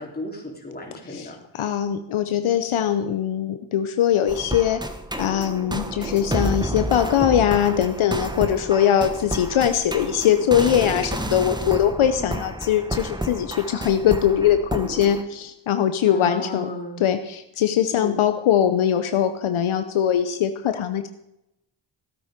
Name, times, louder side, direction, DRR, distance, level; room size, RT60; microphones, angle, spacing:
voice 1, 0.0-1.3 12.2-12.5 16.1-17.0 17.9-18.2, left 1 dB, 20° left, -1 dB, 3.6 m, -34 dB
voice 2, 1.1-4.8 5.2-16.7 17.0-21.1, left 9 dB, 80° left, 9 dB, 0.9 m, -21 dB
sound 1, 4.3-15.2, right 1 dB, 10° right, 1.1 m, -30 dB
15.5 x 8.8 x 5.1 m, 0.86 s
cardioid pair, 65°, 48 cm